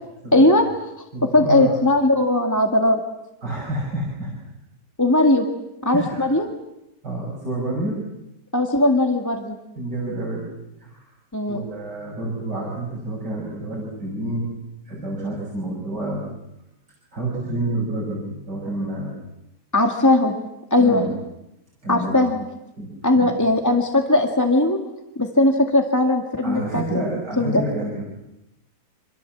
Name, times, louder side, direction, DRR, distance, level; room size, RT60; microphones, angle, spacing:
voice 1, 0.3-0.7 1.2-3.0 5.0-5.5 5.8-6.5 8.5-9.6 11.3-11.6 19.7-20.3 20.7-21.0 21.9-22.4 23.0-24.8 25.2-27.0 27.4-27.6, left 2 dB, 10° left, 3 dB, 1.9 m, -18 dB
voice 2, 1.1-1.7 3.4-4.3 5.9-6.3 7.0-8.0 9.8-10.5 10.8-11.1 11.5-14.5 14.9-16.2 17.1-19.1 20.8-21.1 21.8-22.2 22.8-23.3 26.4-28.0, right 1 dB, 85° right, -4 dB, 6.9 m, -28 dB
27.5 x 26.0 x 7.5 m, 0.87 s
omnidirectional pair, 1.8 m